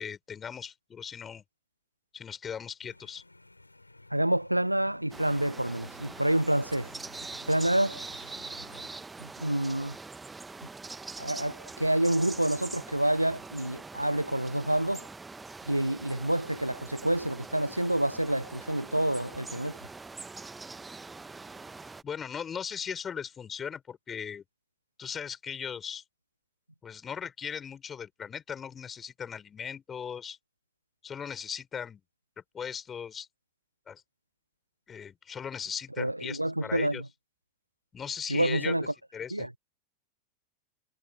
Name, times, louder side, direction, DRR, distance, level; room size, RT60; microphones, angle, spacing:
voice 1, 0.0-1.4 2.1-3.2 22.0-24.4 25.0-26.0 26.8-30.4 31.0-32.0 32.5-33.3 33.9-34.0 34.9-37.0 37.9-38.7 39.1-39.5, left 7 dB, 20° left, 6.2 m, -38 dB
sound 1, 2.8-8.9, left 2 dB, 85° left, 3.9 m, -54 dB
voice 2, 4.1-6.9 7.5-8.0 9.2-10.0 11.2-15.1 15.7-19.8 36.0-37.1 38.3-38.9 39.3-39.5, right 1 dB, 85° right, 0.3 m, -28 dB
sound 2, 5.1-22.0, right 3 dB, 10° right, 1.2 m, -43 dB
figure-of-eight pair, 90°, 0 cm